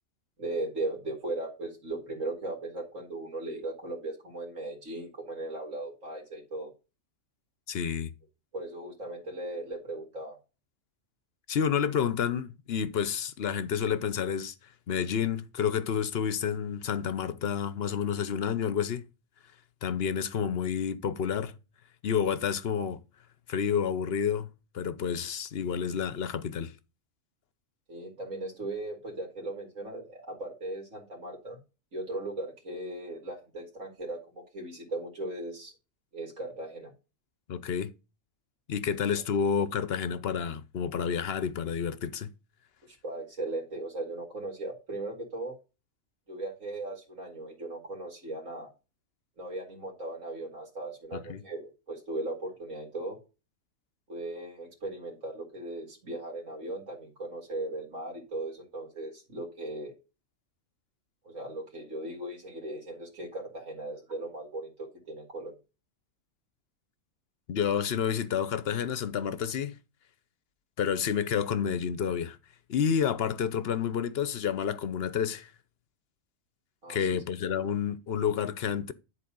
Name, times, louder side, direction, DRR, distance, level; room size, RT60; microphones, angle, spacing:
voice 1, 0.4-6.7 8.5-10.4 27.9-31.6 31.9-35.7 36.1-36.9 42.9-45.6 46.3-48.7 49.4-53.2 54.1-59.9 61.2-65.5 76.8-77.2, right 2 dB, 80° right, 2.9 m, -38 dB
voice 2, 7.7-8.1 11.5-14.5 14.9-19.0 19.8-21.5 22.0-23.0 23.5-24.5 24.7-26.7 37.5-37.9 38.7-42.3 51.1-51.4 67.5-69.8 70.8-72.4 72.7-75.5 76.9-78.9, left 7 dB, 55° left, 0.9 m, -29 dB
10.5 x 4.1 x 5.2 m
omnidirectional pair, 1.3 m